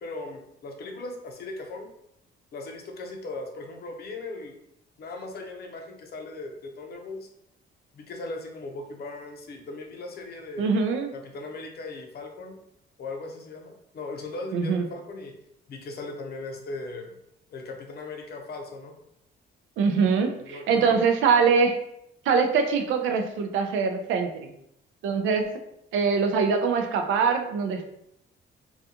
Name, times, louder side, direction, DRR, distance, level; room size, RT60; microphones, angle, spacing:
voice 1, 0.0-1.9 2.5-4.6 5.0-7.3 7.9-10.7 11.1-12.6 13.0-15.3 15.7-17.1 17.5-18.9 20.3-21.0, left 2 dB, 55° left, 3 dB, 0.6 m, -38 dB
voice 2, 10.6-11.1 14.5-14.8 19.8-21.8 22.3-24.5 25.0-25.5 25.9-27.9, right 5 dB, 80° right, 6 dB, 0.4 m, -23 dB
2.3 x 2.3 x 2.7 m, 0.77 s
cardioid pair, 90°, 20 cm